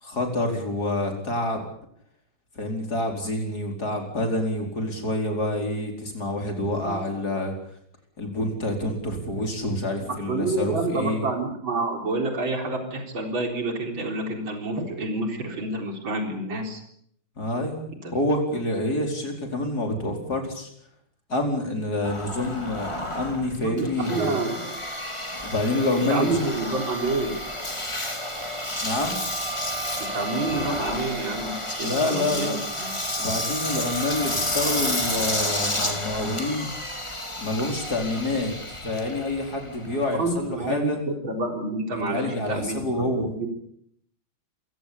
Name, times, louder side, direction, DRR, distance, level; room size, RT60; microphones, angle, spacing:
voice 1, 0.0-1.6 2.6-7.5 8.2-11.3 17.4-20.7 21.3-24.4 25.4-26.3 28.8-29.2 31.8-32.6 33.2-36.7 37.4-41.0 42.1-43.3, left 1 dB, 50° left, 3 dB, 5.2 m, -27 dB
voice 2, 10.3-16.8 18.0-18.1 23.6-24.7 26.0-27.3 30.0-32.9 40.2-43.5, right 2 dB, 70° right, 4 dB, 4.7 m, -28 dB
Engine, 22.0-40.5, left 1 dB, 15° left, 3.1 m, -31 dB
27.0 x 17.0 x 8.6 m, 0.69 s
omnidirectional pair, 2.2 m